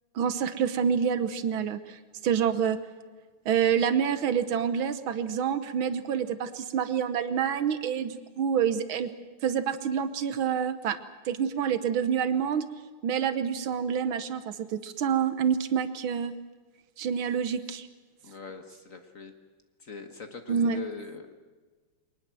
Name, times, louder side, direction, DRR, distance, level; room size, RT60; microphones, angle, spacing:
voice 1, 0.2-2.8 3.5-9.1 9.4-11.0 11.3-12.7 13.0-16.3 17.0-17.9 20.5-20.8, right 7 dB, 70° right, 12 dB, 1.7 m, -27 dB
voice 2, 18.2-19.3 19.8-21.4, left 5 dB, 40° left, 7 dB, 1.5 m, -41 dB
23.0 x 19.5 x 7.6 m, 1.4 s
omnidirectional pair, 2.4 m